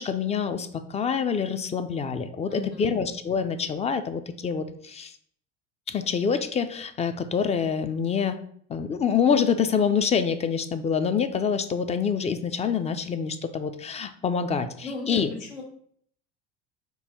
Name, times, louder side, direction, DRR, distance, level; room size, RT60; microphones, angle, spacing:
voice 1, 0.0-5.1 5.9-8.4 8.7-15.3, left 6 dB, 20° left, 10 dB, 0.3 m, -26 dB
voice 2, 2.5-2.9 14.8-15.6, left 2 dB, 90° left, -1 dB, 1.7 m, -36 dB
5.3 x 2.2 x 4.3 m, 0.64 s
hypercardioid pair, 90°, 34 cm